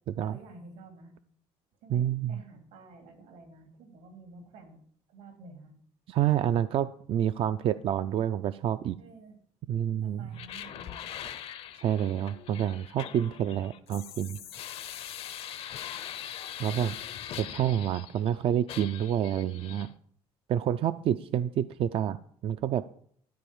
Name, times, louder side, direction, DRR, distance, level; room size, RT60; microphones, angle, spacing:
voice 1, 0.2-1.1 1.8-4.8 5.1-5.7 9.0-9.4 10.0-11.1, right 3 dB, 85° right, 5 dB, 3.0 m, -50 dB
voice 2, 1.9-2.4 6.1-9.0 9.7-10.3 11.8-14.4 16.6-16.9 17.4-19.9 20.5-22.2 22.4-22.8, right 10 dB, 50° right, 12 dB, 0.4 m, -28 dB
sound 1, 10.3-18.3 18.7-19.9, left 10 dB, 55° left, 0.7 m, -42 dB
13.0 x 4.5 x 8.7 m, 0.63 s
cardioid pair, 120°, 12 cm